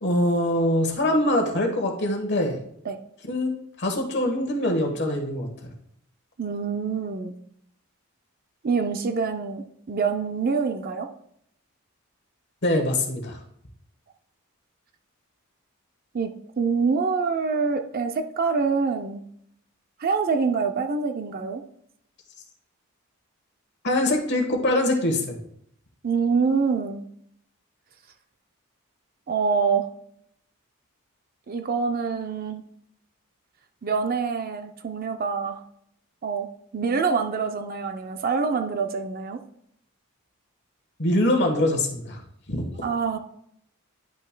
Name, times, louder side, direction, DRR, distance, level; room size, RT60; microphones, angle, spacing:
voice 1, 0.0-2.6 3.3-3.5 3.8-5.7 12.6-13.4 23.8-25.4 41.0-42.2 42.5-42.6, left 1 dB, 50° left, 3 dB, 1.2 m, -23 dB
voice 2, 6.4-7.3 8.6-11.1 16.1-16.3 16.6-19.2 20.0-21.6 26.0-27.0 29.3-29.9 31.5-32.6 33.8-35.6 36.2-39.4 42.8-43.2, right 5 dB, 40° right, 6 dB, 0.5 m, -25 dB
10.0 x 5.7 x 2.2 m, 0.71 s
head